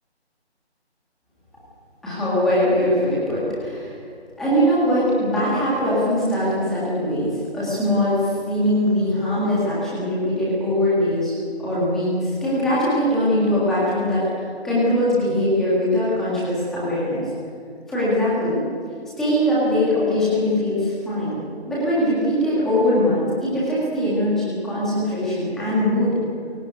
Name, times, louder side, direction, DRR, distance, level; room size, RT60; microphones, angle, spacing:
voice 1, 2.0-4.0 4.4-11.3 11.6-17.2 17.9-18.6 19.2-21.4 21.7-26.1, left 1 dB, ahead, -9 dB, 1.8 m, -21 dB
23.0 x 17.0 x 9.4 m, 2.5 s
figure-of-eight pair, 175°, 33 cm